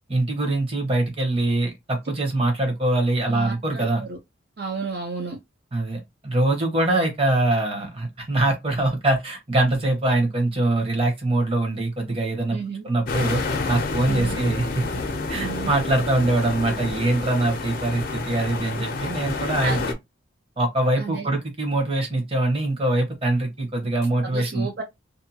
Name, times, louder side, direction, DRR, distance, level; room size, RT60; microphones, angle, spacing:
voice 1, 0.1-4.0 5.7-12.6 12.8-14.8 15.3-19.8 20.6-24.7, right 2 dB, 30° right, 0.9 m, -23 dB
voice 2, 3.3-4.2 4.6-5.4 12.5-12.9 14.1-14.4 15.3-15.7 19.6-19.8 21.0-21.3 24.2-24.8, right 5 dB, 55° right, 0.5 m, -32 dB
sound 1, 13.1-19.9, left 3 dB, 50° left, 0.5 m, -29 dB
2.6 x 2.3 x 2.8 m
head